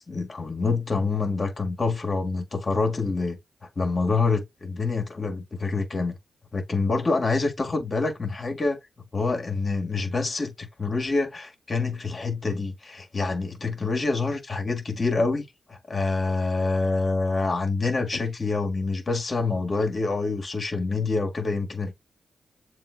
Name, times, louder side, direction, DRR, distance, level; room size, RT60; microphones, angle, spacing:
voice 1, 0.1-3.4 3.7-6.1 6.5-8.8 9.1-21.9, left 3 dB, 45° left, 1.7 m, -26 dB
7.2 x 2.4 x 2.4 m
supercardioid pair, 40°, 0 cm